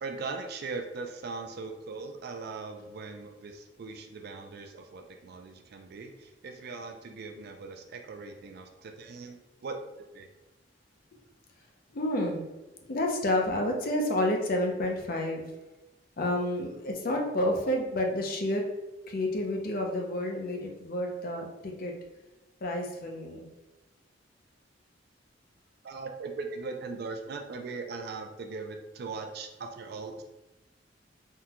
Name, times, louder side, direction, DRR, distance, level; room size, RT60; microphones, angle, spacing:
voice 1, 0.0-9.8 10.1-10.3 25.8-30.3, right 4 dB, 55° right, 5 dB, 0.4 m, -40 dB
voice 2, 11.9-12.4 12.9-15.5 16.2-18.7 19.1-22.0 22.6-23.5, left 1 dB, 50° left, 1 dB, 0.5 m, -29 dB
3.6 x 2.2 x 2.8 m, 1.0 s
head